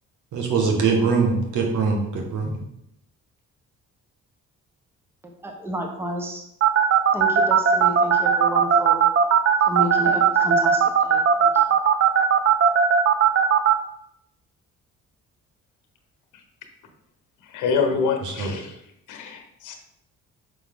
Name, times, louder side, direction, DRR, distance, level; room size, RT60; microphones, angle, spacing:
voice 1, 0.3-2.5 18.4-18.5, right 4 dB, 80° right, 2 dB, 1.5 m, -22 dB
voice 2, 5.4-6.4 7.1-9.1 9.7-11.6, right 1 dB, 10° right, 2 dB, 1.1 m, -31 dB
sound 1, 6.6-13.7, right 8 dB, 50° right, 0.7 m, -17 dB
voice 3, 17.4-18.8 19.1-19.7, left 5 dB, 80° left, 5 dB, 1.1 m, -26 dB
5.9 x 5.5 x 3.7 m, 0.77 s
cardioid pair, 90°, 30 cm